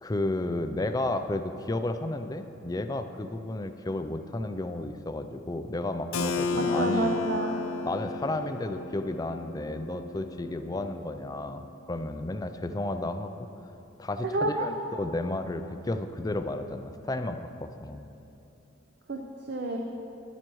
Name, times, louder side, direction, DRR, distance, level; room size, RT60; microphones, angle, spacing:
voice 1, 0.0-7.1 7.8-11.6 11.9-13.5 14.0-18.1, left 2 dB, 20° left, 8 dB, 0.4 m, -32 dB
Keyboard (musical), 6.1-11.7, left 3 dB, 90° left, 0.6 m, -33 dB
voice 2, 6.5-7.6 14.3-14.7 19.1-19.8, right 2 dB, 55° right, 2 dB, 0.6 m, -29 dB
13.5 x 11.0 x 3.1 m, 2.8 s
head